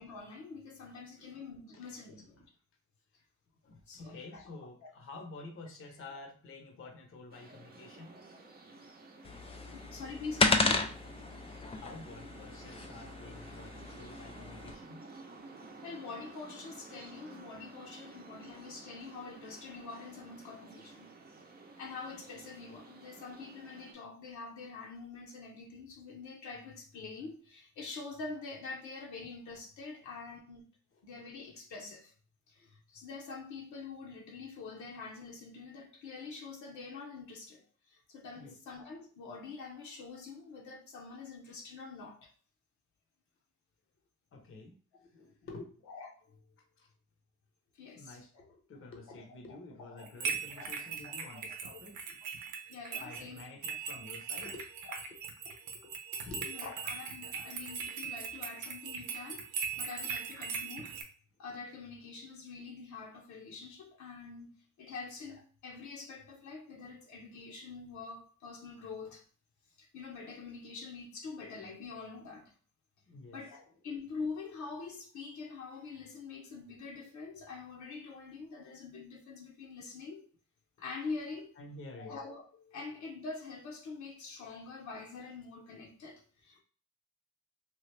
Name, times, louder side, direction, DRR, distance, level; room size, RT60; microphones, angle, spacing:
voice 1, 0.0-2.4 3.9-4.4 4.8-4.9 7.5-7.6 8.1-8.2 9.6-10.9 14.3-14.5 15.8-21.1 21.8-30.6 31.0-32.1 32.5-42.3 45.9-46.4 47.7-48.4 49.1-49.2 49.5-50.1 50.5-50.7 51.0-51.4 52.7-53.4 54.4-54.5 56.5-61.0 61.4-69.2 69.8-72.5 73.3-80.3 80.8-81.5 82.0-86.6, left 4 dB, 70° left, 0.9 m, -45 dB
voice 2, 1.7-2.5 3.1-3.2 3.6-8.2 8.8-8.9 9.8-9.9 11.4-11.5 11.7-15.0 30.9-31.0 32.6-32.7 38.3-38.6 44.3-45.8 46.8-46.9 47.9-52.2 53.0-54.7 55.1-56.6 73.1-73.5 81.6-82.2, left 3 dB, 45° left, 0.8 m, -50 dB
sound 1, 7.3-23.9, right 3 dB, 30° right, 0.7 m, -53 dB
sound 2, 9.2-14.7, left 3 dB, 20° left, 0.3 m, -33 dB
sound 3, 50.0-61.0, right 6 dB, 80° right, 0.7 m, -40 dB
3.0 x 2.4 x 3.2 m
cardioid pair, 90°, 30 cm